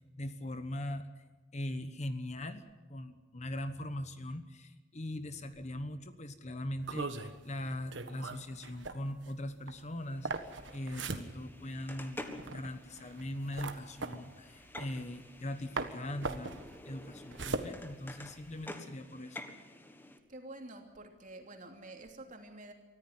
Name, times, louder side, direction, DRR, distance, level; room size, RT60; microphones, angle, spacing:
voice 1, 0.2-1.1 1.5-2.6 2.9-16.5 16.8-19.4, left 1 dB, 35° left, 10 dB, 1.1 m, -41 dB
sound 1, 6.8-15.5 15.8-18.6, right 3 dB, 65° right, 1.5 m, -40 dB
sound 2, 10.0-20.2, left 1 dB, 10° left, 1.5 m, -50 dB
voice 2, 20.3-22.7, right 2 dB, 40° right, 3 dB, 2.9 m, -48 dB
24.0 x 14.5 x 9.5 m, 1.2 s
head